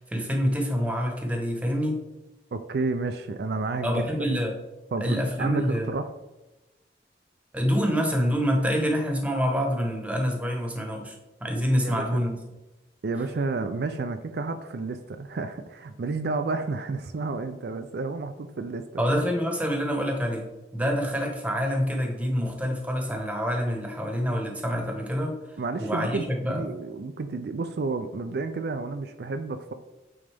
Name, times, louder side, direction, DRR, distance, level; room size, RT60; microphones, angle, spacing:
voice 1, 0.0-2.0 3.8-4.6 5.0-5.9 7.5-12.4 19.0-20.4 20.7-25.4 25.8-26.6, equal, 10° right, 2 dB, 1.0 m, -26 dB
voice 2, 2.5-4.0 4.9-6.1 11.8-12.0 13.0-19.0 25.6-29.7, right 3 dB, 60° right, 8 dB, 0.4 m, -31 dB
8.6 x 3.9 x 3.5 m, 1.1 s
head